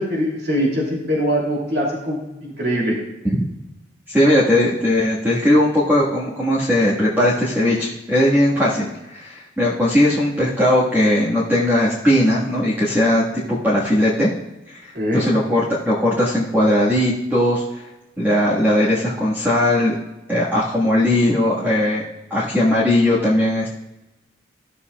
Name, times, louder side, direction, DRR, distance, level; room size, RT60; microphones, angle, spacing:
voice 1, 0.0-2.9 14.9-15.2, equal, 65° right, -3 dB, 2.7 m, -22 dB
voice 2, 4.1-14.3 14.7-14.8 15.1-17.6 18.2-20.0 20.3-22.0 22.3-23.7, left 1 dB, 10° right, -8 dB, 1.5 m, -18 dB
15.5 x 6.9 x 2.3 m, 0.98 s
head